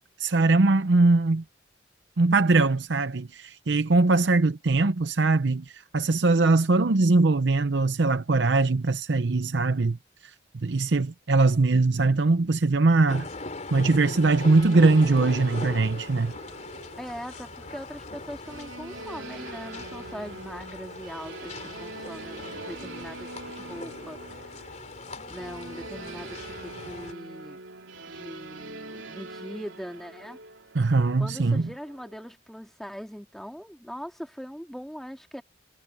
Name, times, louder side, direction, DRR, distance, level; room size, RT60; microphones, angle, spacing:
voice 1, 0.2-1.4 2.2-10.0 10.6-13.3 13.7-16.3 30.7-31.7, right 3 dB, 65° right, 0.7 m, -21 dB
sound 1, 13.1-27.1, left 2 dB, 40° left, 3.8 m, -40 dB
sound 2, 14.2-32.3, right 2 dB, 85° right, 3.1 m, -43 dB
voice 2, 17.0-24.5 25.2-27.6 28.1-30.4 31.2-35.4, equal, ahead, 2.4 m, -41 dB
head